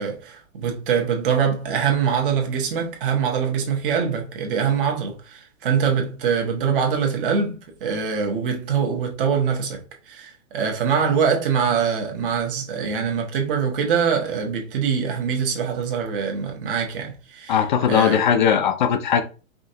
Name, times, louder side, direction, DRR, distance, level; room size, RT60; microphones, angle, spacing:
voice 1, 0.0-17.6 17.9-18.5, right 6 dB, 40° right, 1.2 m, -23 dB
voice 2, 17.5-19.2, left 8 dB, 35° left, 0.5 m, -19 dB
5.0 x 2.5 x 2.7 m
hypercardioid pair, 160°, 41 cm